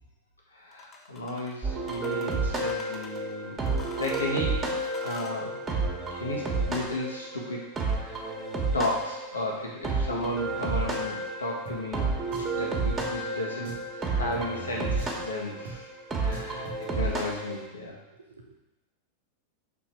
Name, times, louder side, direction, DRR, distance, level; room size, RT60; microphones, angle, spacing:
voice 1, 0.5-3.6 4.0-4.7 5.0-5.6 6.1-7.6 8.0-8.2 8.7-12.1 12.6-15.9 16.2-18.0, left 2 dB, 75° left, -2 dB, 1.5 m, -34 dB
sound 1, 0.7-1.6 1.9-3.2 3.7-5.4, left 3 dB, 20° left, 0.9 m, -46 dB
sound 2, 1.6-17.7, right 3 dB, 20° right, 1.4 m, -31 dB
Drum, 11.7-11.8 12.3-12.6 13.0-13.1 13.6-13.9 14.3-14.5 15.0-15.2 15.7-15.8 16.3-16.8, right 4 dB, 50° right, 0.9 m, -42 dB
voice 2, 16.3-17.0 17.5-18.5, right 5 dB, 75° right, 1 dB, 0.9 m, -52 dB
6.0 x 4.3 x 4.6 m, 1.1 s
figure-of-eight pair, 90°, 0 cm